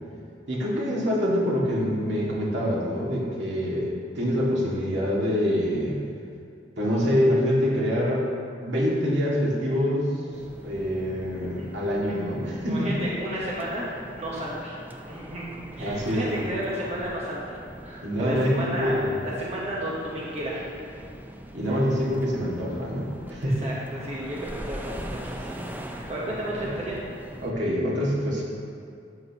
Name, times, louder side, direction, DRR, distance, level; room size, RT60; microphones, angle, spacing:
voice 1, 0.5-6.0 6.8-8.3 8.6-10.1 10.6-12.9 15.8-16.4 18.0-19.2 21.5-23.6 26.6-26.8 27.4-28.4, equal, 75° right, -5 dB, 2.1 m, -25 dB
sound 1, 10.3-27.5, equal, 10° right, 0.5 m, -41 dB
voice 2, 12.7-14.8 15.0-20.6 21.7-21.8 23.4-25.5 25.9-27.0, right 1 dB, 35° right, -5 dB, 1.1 m, -33 dB
12.5 x 7.7 x 3.0 m, 2.3 s
head